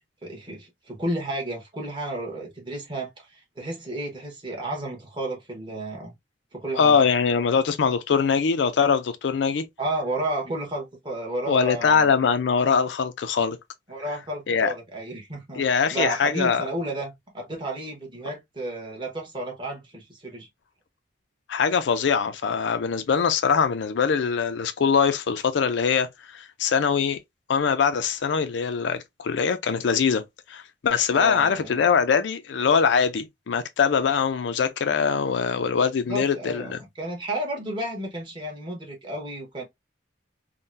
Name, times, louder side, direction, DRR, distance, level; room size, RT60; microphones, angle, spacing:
voice 1, 0.2-6.1 6.5-7.0 9.8-12.1 13.9-15.6 15.9-20.5 31.1-31.8 36.1-39.6, right 1 dB, 25° right, 1.2 m, -32 dB
voice 2, 6.8-9.6 11.5-13.6 14.5-14.7 15.6-16.6 21.5-27.2 27.5-30.2 30.5-36.8, left 6 dB, 70° left, 0.4 m, -22 dB
3.7 x 2.1 x 2.6 m
head